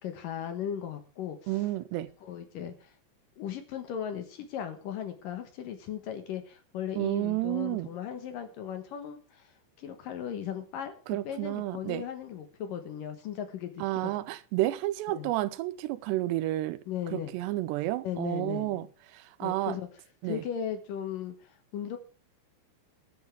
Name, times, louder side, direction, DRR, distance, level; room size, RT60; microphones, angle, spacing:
voice 1, 0.0-1.7 2.2-2.9 3.4-9.5 9.8-14.1 15.1-15.3 16.9-17.3 18.0-18.8 19.4-19.9 20.2-22.0, left 9 dB, 65° left, 2.6 m, -37 dB
voice 2, 1.5-2.1 7.0-7.9 11.1-12.0 13.8-16.8 17.1-18.9 19.1-19.8 20.2-20.4, right 16 dB, 90° right, 2.9 m, -31 dB
20.5 x 9.4 x 3.5 m
omnidirectional pair, 4.8 m